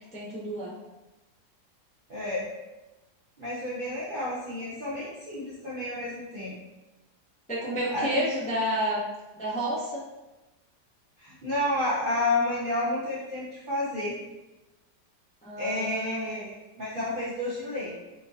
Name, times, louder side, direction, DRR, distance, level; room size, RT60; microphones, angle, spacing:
voice 1, 0.1-0.7 7.5-9.0 9.3-10.0 15.4-16.3, equal, 10° left, -8 dB, 0.4 m, -30 dB
voice 2, 2.1-2.5 3.4-6.5 7.9-8.3 11.2-14.2 15.6-17.9, left 1 dB, 50° right, -9 dB, 0.6 m, -30 dB
4.4 x 2.6 x 2.3 m, 1.1 s
omnidirectional pair, 1.8 m